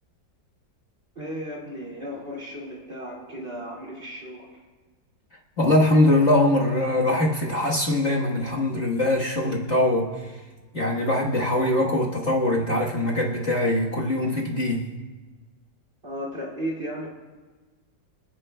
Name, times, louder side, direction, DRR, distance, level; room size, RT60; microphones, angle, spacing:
voice 1, 1.2-4.6 16.0-17.1, equal, 30° right, -3 dB, 2.3 m, -35 dB
voice 2, 5.6-10.4 10.7-14.9, left 1 dB, 40° left, -4 dB, 1.6 m, -22 dB
27.5 x 9.5 x 2.2 m, 1.3 s
omnidirectional pair, 2.0 m